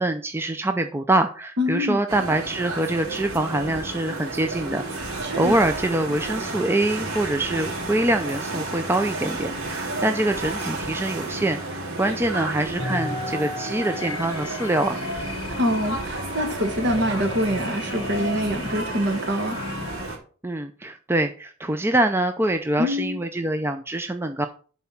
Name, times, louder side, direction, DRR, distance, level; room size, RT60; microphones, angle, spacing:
voice 1, 0.0-15.0 20.4-24.5, right 1 dB, 10° right, 7 dB, 0.4 m, -25 dB
voice 2, 1.6-2.0 5.2-5.6 15.5-19.6 22.8-23.2, left 1 dB, 50° right, 7 dB, 1.6 m, -25 dB
sound 1, 2.1-20.2, right 2 dB, 70° right, 2.4 m, -32 dB
sound 2, 12.8-20.1, left 2 dB, 20° left, 1.3 m, -35 dB
11.0 x 4.3 x 5.8 m, 0.41 s
head